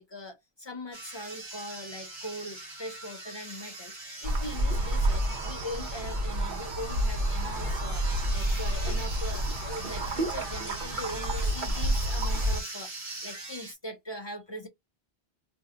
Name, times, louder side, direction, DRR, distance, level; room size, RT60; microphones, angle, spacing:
voice 1, 0.0-14.7, left 1 dB, 35° left, 0.4 m, -41 dB
sound 1, 0.9-13.7, right 2 dB, 30° right, 1.0 m, -41 dB
sound 2, 4.2-12.6, right 1 dB, 55° right, 0.8 m, -29 dB
2.6 x 2.1 x 3.7 m
omnidirectional pair, 1.0 m